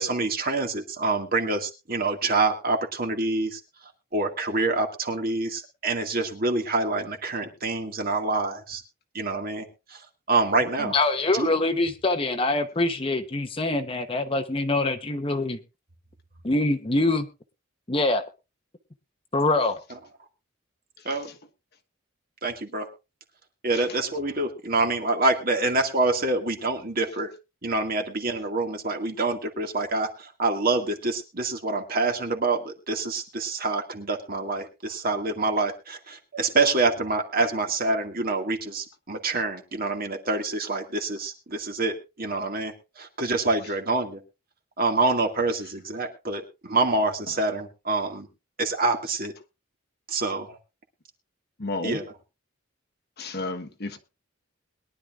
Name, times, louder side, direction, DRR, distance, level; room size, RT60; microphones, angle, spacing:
voice 1, 0.0-3.6 4.1-8.8 9.1-11.0 11.3-11.5 21.0-21.3 22.4-22.9 23.6-27.3 27.6-44.2 44.8-48.3 48.6-49.3 50.1-50.6 51.8-52.1, right 3 dB, 45° right, 2.1 m, -26 dB
voice 2, 10.9-15.6 16.4-17.3 17.9-18.2 19.3-19.8, left 2 dB, 25° left, 0.9 m, -24 dB
voice 3, 51.6-52.0 53.2-54.0, left 2 dB, 50° left, 1.2 m, -32 dB
22.0 x 11.0 x 2.5 m
head